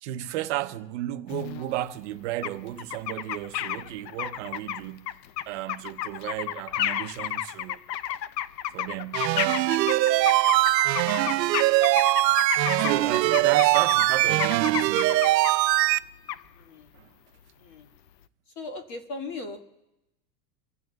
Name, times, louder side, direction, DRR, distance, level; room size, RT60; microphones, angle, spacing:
voice 1, 0.0-5.1 5.5-7.8 8.7-9.3 12.8-15.3 16.9-17.1, right 15 dB, 45° right, 0.8 m, -33 dB
sound 1, 1.3-1.8 2.4-2.5 2.8-15.5 16.3-16.4, left 12 dB, 85° left, 0.8 m, -32 dB
sound 2, 9.1-16.0, right 17 dB, 85° right, 0.7 m, -22 dB
voice 2, 18.6-19.6, left 3 dB, 35° left, 2.0 m, -37 dB
27.0 x 15.5 x 2.3 m
supercardioid pair, 165°, 49 cm